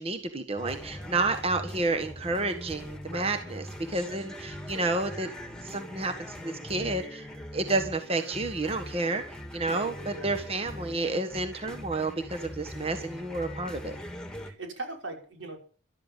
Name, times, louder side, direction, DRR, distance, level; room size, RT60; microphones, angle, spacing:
voice 1, 0.0-5.3 5.6-7.2 7.5-14.0, right 2 dB, 30° right, 7 dB, 1.3 m, -30 dB
sound 1, 0.6-14.5, equal, 5° left, 2.0 m, -42 dB
voice 2, 9.7-10.7 14.4-15.6, right 2 dB, 90° right, 2 dB, 5.6 m, -40 dB
13.5 x 12.0 x 7.4 m, 0.41 s
head